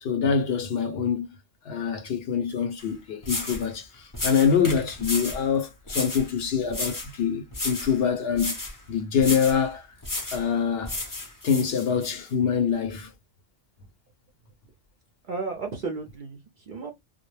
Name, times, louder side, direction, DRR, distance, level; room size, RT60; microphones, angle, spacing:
voice 1, 0.0-1.3 1.6-8.6 8.9-9.9 10.3-11.0 11.4-13.1, left 7 dB, 65° left, 0.7 m, -25 dB
sound 1, 2.8-2.9 3.2-3.7 4.1-5.4 5.9-6.3 6.7-7.1 7.5-8.0 8.3-8.8 9.2-9.6 10.0-10.5 10.8-12.1, left 2 dB, 25° left, 0.4 m, -32 dB
voice 2, 15.2-16.9, right 4 dB, 55° right, 0.6 m, -34 dB
2.2 x 2.0 x 3.0 m
omnidirectional pair, 1.2 m